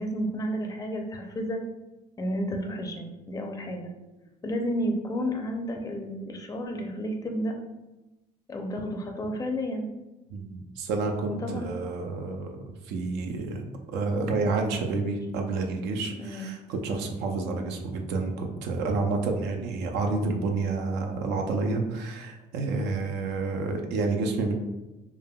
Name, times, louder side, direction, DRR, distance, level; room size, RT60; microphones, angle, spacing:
voice 1, 0.0-1.6 2.2-3.9 4.4-7.5 8.5-9.9 11.3-11.7 16.2-16.5, equal, 20° left, 3 dB, 0.4 m, -31 dB
voice 2, 10.3-13.6 13.9-24.5, right 3 dB, 85° right, 3 dB, 0.5 m, -29 dB
3.4 x 2.1 x 2.2 m, 1.0 s
cardioid pair, 110°, 17 cm